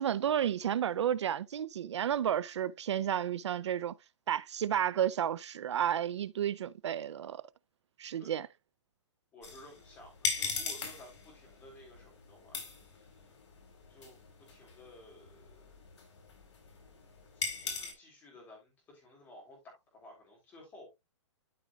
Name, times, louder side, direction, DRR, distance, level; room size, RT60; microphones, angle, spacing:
voice 1, 0.0-3.9 4.3-7.4 8.0-8.5, right 10 dB, 65° right, 0.5 m, -32 dB
voice 2, 9.3-12.6 12.9-13.2 13.9-14.2 14.5-15.8 17.4-20.9, left 1 dB, 10° left, 3.5 m, -55 dB
sound 1, 9.4-17.9, left 4 dB, 70° left, 4.2 m, -40 dB
12.5 x 5.0 x 2.3 m
hypercardioid pair, 175°, 16 cm